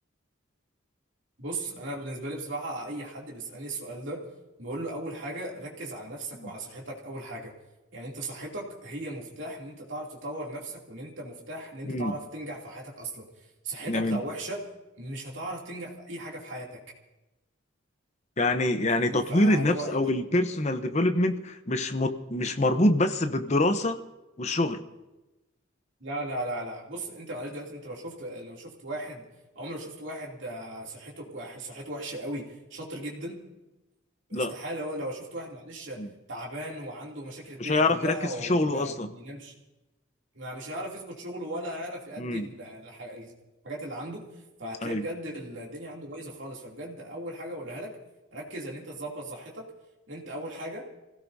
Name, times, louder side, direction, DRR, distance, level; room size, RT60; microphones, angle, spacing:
voice 1, 1.4-4.2 4.6-7.5 7.9-13.2 13.6-14.6 15.0-16.8 19.0-20.0 26.0-29.2 29.5-33.4 34.3-39.5 40.3-43.3 43.6-44.2 44.6-48.0 48.3-49.7 50.1-50.9, right 1 dB, 65° right, -3 dB, 2.9 m, -37 dB
voice 2, 13.9-14.2 18.4-24.0 24.4-24.8 34.3-34.5 36.0-36.1 37.6-39.1 42.2-42.5 44.8-45.0, left 1 dB, 35° left, 8 dB, 0.9 m, -25 dB
27.5 x 17.0 x 2.7 m, 1.0 s
head